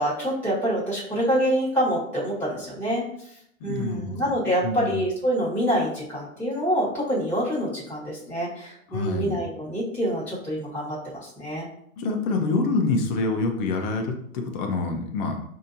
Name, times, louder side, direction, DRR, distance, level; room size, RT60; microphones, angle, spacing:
voice 1, 0.0-11.7, equal, 5° left, -8 dB, 1.5 m, -26 dB
voice 2, 3.6-4.3 4.6-5.0 8.9-9.4 12.0-15.5, left 3 dB, 35° left, 3 dB, 0.8 m, -26 dB
5.3 x 2.8 x 2.7 m, 0.71 s
hypercardioid pair, 120°, 41 cm